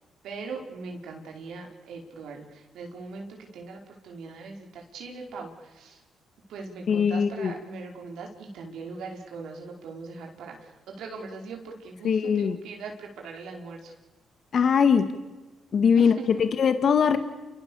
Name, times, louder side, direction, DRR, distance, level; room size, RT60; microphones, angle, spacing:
voice 1, 0.2-6.0 6.5-13.9 15.9-16.4, right 4 dB, 75° right, 1 dB, 4.9 m, -40 dB
voice 2, 6.9-7.5 12.0-12.6 14.5-15.1 15.7-16.1 16.4-17.2, left 6 dB, 55° left, 9 dB, 1.8 m, -21 dB
29.5 x 24.0 x 7.2 m, 1.2 s
cardioid pair, 90°, 0 cm